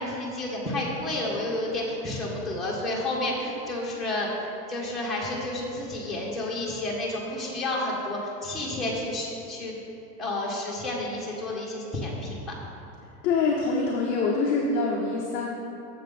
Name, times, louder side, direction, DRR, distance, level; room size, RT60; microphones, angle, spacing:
voice 1, 0.0-4.3 4.7-9.8 10.2-12.5, left 1 dB, ahead, -6 dB, 1.4 m, -30 dB
voice 2, 13.2-15.5, left 4 dB, 20° left, -3 dB, 0.6 m, -25 dB
11.0 x 7.4 x 4.1 m, 2.8 s
supercardioid pair, 160°, 48 cm